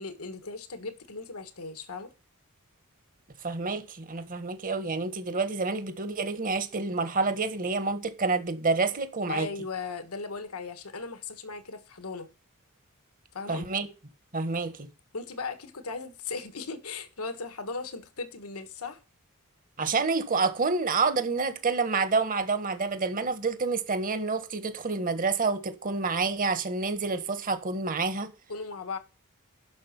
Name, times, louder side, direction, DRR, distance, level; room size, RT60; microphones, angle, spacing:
voice 1, 0.0-2.1 9.3-12.3 13.3-13.7 15.1-19.0 28.5-29.0, left 4 dB, 75° left, 1.6 m, -37 dB
voice 2, 3.4-9.5 13.5-13.9 14.3-14.9 19.8-28.3, right 4 dB, 40° right, 1.5 m, -28 dB
11.5 x 6.2 x 5.9 m
head